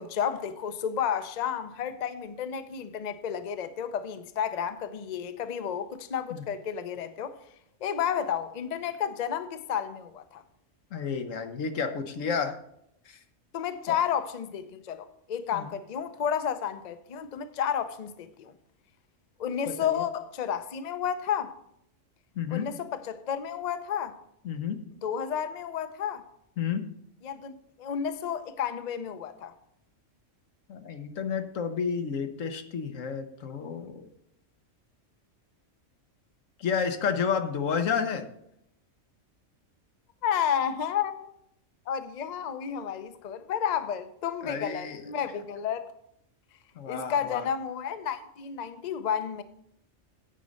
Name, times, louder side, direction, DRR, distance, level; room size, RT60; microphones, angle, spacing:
voice 1, 0.0-7.4 7.8-10.4 13.5-18.5 19.4-21.5 22.5-24.1 25.0-26.2 27.2-29.5 40.2-41.4 41.9-45.9 46.9-49.4, left 8 dB, 45° left, 0.6 m, -31 dB
voice 2, 10.9-12.6 13.1-13.2 15.5-15.7 19.7-20.0 22.4-22.7 24.4-24.8 26.6-26.8 30.7-34.1 36.6-38.3 44.4-45.0 46.8-47.5, left 6 dB, 90° left, 1.3 m, -31 dB
9.2 x 5.2 x 7.5 m
omnidirectional pair, 1.3 m